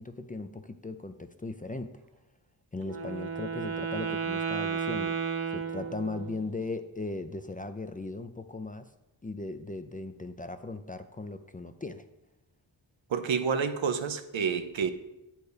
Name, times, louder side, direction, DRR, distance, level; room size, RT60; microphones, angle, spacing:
voice 1, 0.0-1.9 2.7-8.9 9.2-12.0, left 3 dB, 20° left, 8 dB, 0.4 m, -38 dB
Wind instrument woodwind instrument, 2.8-6.5, right 6 dB, 55° right, 1.0 m, -33 dB
voice 2, 13.1-14.9, right 6 dB, 75° right, 9 dB, 0.7 m, -29 dB
8.1 x 4.5 x 4.9 m, 0.95 s
cardioid pair, 50°, 47 cm